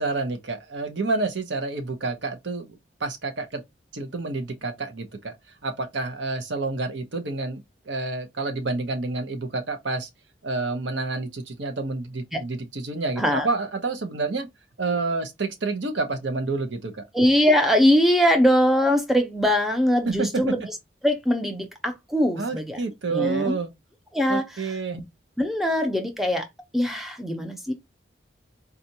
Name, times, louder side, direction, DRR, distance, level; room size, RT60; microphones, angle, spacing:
voice 1, 0.0-3.6 3.9-5.3 5.6-10.1 10.4-14.5 14.8-17.0 20.0-20.3 22.4-23.7 24.3-25.0, right 3 dB, 80° right, 0.9 m, -29 dB
voice 2, 13.2-13.5 17.1-20.8 21.0-22.8 23.1-23.6 24.1-25.0 25.4-26.5 26.7-27.7, equal, ahead, 0.6 m, -22 dB
4.1 x 2.4 x 2.7 m
head